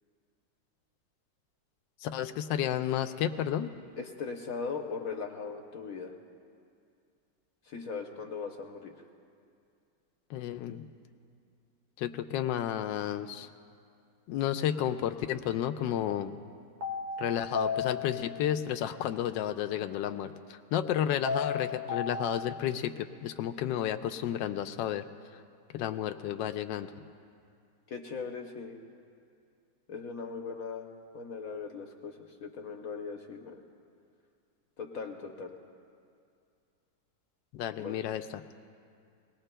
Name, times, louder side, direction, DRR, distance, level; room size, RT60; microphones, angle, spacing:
voice 1, 2.0-3.7 10.3-10.8 12.0-13.5 14.3-16.3 17.2-25.0 25.7-26.9 37.5-38.4, left 10 dB, 80° left, 7 dB, 1.2 m, -32 dB
voice 2, 4.0-6.1 7.7-8.9 27.9-28.8 29.9-30.9 31.1-33.6 34.8-35.6 37.8-38.0, left 5 dB, 60° left, 3 dB, 1.1 m, -39 dB
sound 1, 16.8-18.7 21.2-22.7, left 5 dB, 35° right, 0.9 m, -34 dB
23.5 x 19.0 x 2.2 m, 2.4 s
omnidirectional pair, 1.9 m